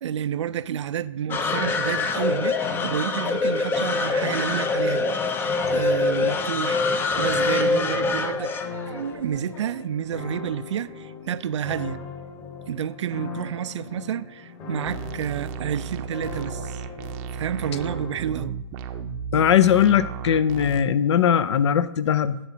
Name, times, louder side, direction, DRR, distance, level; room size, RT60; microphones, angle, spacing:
voice 1, 0.0-5.0 5.4-6.8 7.2-8.5 8.9-12.0 12.7-16.8 17.3-18.6, right 9 dB, 80° right, 0.4 m, -30 dB
sound 1, 1.3-18.5, left 4 dB, 30° left, 1.4 m, -39 dB
sound 2, 1.3-9.7, left 3 dB, 15° left, 0.5 m, -24 dB
sound 3, 14.9-20.8, right 7 dB, 35° right, 0.6 m, -34 dB
voice 2, 19.3-22.4, left 9 dB, 70° left, 0.6 m, -19 dB
11.0 x 7.2 x 2.8 m
hypercardioid pair, 135°, 15 cm